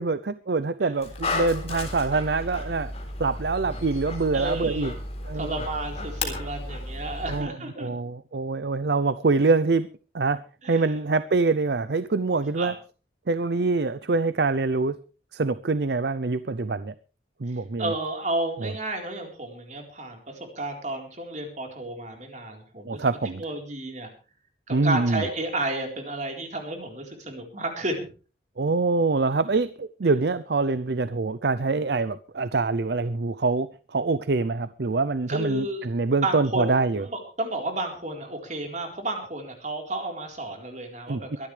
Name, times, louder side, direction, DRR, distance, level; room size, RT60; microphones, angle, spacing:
voice 1, 0.0-2.9 3.2-4.9 5.2-5.5 7.3-9.9 10.1-10.4 10.7-12.8 13.3-14.9 15.3-16.9 17.4-17.9 18.6-18.7 22.8-23.4 24.7-25.2 28.6-37.1 41.1-41.3, right 3 dB, 60° right, 15 dB, 0.6 m, -25 dB
Dog, 1.0-7.4, left 2 dB, 35° left, 3.7 m, -33 dB
voice 2, 4.3-4.9 5.3-7.9 10.6-10.9 12.6-12.7 17.8-23.0 23.4-24.1 24.7-28.1 35.3-35.8 36.2-36.7 37.0-41.5, right 2 dB, 40° right, 3 dB, 4.1 m, -32 dB
23.5 x 12.0 x 3.3 m, 0.36 s
head